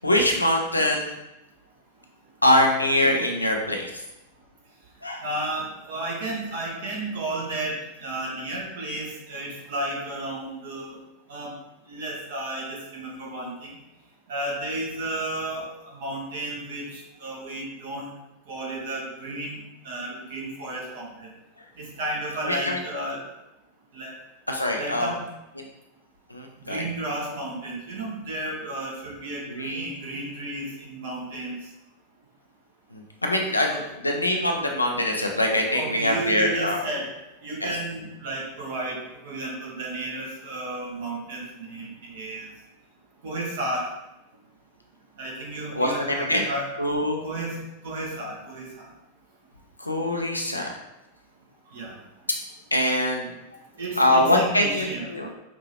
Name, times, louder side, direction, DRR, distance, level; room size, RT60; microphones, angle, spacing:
voice 1, 0.0-1.1 2.4-3.9 5.0-5.2 22.4-22.8 24.5-25.1 25.6-25.7 26.3-26.8 29.5-29.9 32.9-36.8 37.6-37.7 45.7-46.4 46.8-47.2 49.8-50.7 52.7-53.3 54.0-55.3, left 1 dB, 85° left, 2 dB, 0.6 m, -23 dB
voice 2, 5.2-11.0 11.3-11.5 11.9-13.7 14.3-15.6 15.9-18.1 18.5-19.6 19.8-21.3 21.8-23.2 23.9-24.1 24.8-25.2 26.7-31.6 33.7-33.9 35.7-37.1 37.4-39.0 39.2-42.5 43.2-43.8 45.2-46.7 47.2-47.6 47.8-48.8 51.7-51.9 53.8-55.1, right 1 dB, 55° right, -3 dB, 1.3 m, -32 dB
5.1 x 2.8 x 3.4 m, 0.92 s
figure-of-eight pair, 90°, 0 cm